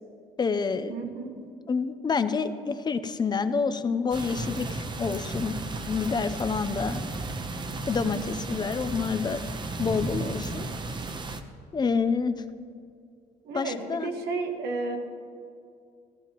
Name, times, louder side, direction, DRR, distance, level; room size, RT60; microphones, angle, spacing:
voice 1, 0.4-1.0 1.4-5.5 5.9-7.0 7.9-9.4 9.8-10.7 11.7-12.4 13.5-14.1, left 5 dB, 25° left, 11 dB, 0.6 m, -28 dB
voice 2, 0.9-1.4 13.4-15.0, right 3 dB, 75° right, 3 dB, 1.6 m, -32 dB
sound 1, 4.1-11.4, right 3 dB, 25° right, 0.8 m, -34 dB
15.5 x 14.5 x 3.0 m, 2.4 s
cardioid pair, 110°, 17 cm